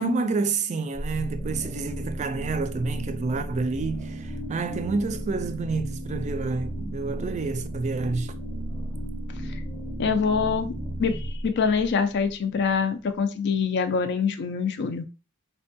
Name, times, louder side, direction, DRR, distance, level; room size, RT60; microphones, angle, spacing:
voice 1, 0.0-8.3, right 4 dB, 30° right, 0.3 m, -29 dB
sound 1, 0.9-12.7, right 1 dB, 15° left, 0.7 m, -34 dB
voice 2, 10.0-10.7 11.0-15.0, left 5 dB, 50° left, 0.4 m, -25 dB
4.2 x 2.2 x 2.7 m
head